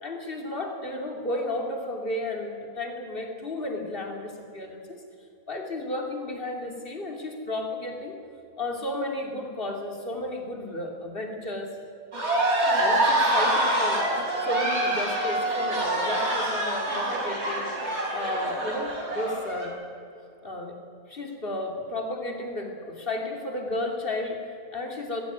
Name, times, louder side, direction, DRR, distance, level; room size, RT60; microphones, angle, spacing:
voice 1, 0.0-5.0 5.5-8.2 8.6-11.8 12.8-19.8 20.4-20.8 21.1-25.2, left 2 dB, 40° left, 2 dB, 3.1 m, -33 dB
sound 1, 12.1-19.7, right 1 dB, 50° right, 4.6 m, -26 dB
20.0 x 16.0 x 9.4 m, 2.6 s
omnidirectional pair, 1.5 m